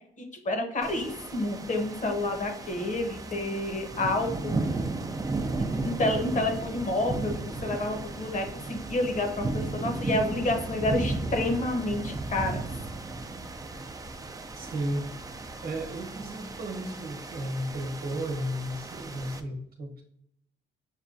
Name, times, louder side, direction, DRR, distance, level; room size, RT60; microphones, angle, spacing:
voice 1, 0.4-4.5 6.0-9.5 9.7-12.6, left 2 dB, 40° left, 4 dB, 1.0 m, -29 dB
sound 1, 0.8-19.4, right 3 dB, 20° right, 0.4 m, -35 dB
voice 2, 14.6-15.1 15.6-20.0, right 1 dB, 50° right, 3 dB, 1.1 m, -34 dB
6.4 x 2.2 x 2.5 m, 0.73 s
cardioid pair, 90°, 20 cm